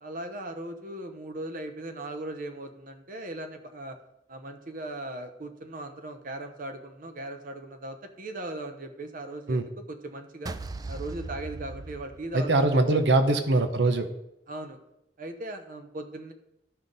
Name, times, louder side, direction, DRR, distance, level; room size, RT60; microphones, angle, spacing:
voice 1, 0.0-4.0 4.3-10.5 10.9-13.0 14.5-14.8 15.2-16.3, right 1 dB, 50° right, 7 dB, 0.8 m, -38 dB
sound 1, 10.5-12.8, right 3 dB, 20° right, 0.3 m, -38 dB
voice 2, 12.3-14.1, right 2 dB, 80° right, 8 dB, 0.7 m, -22 dB
12.5 x 5.7 x 4.0 m, 0.86 s
head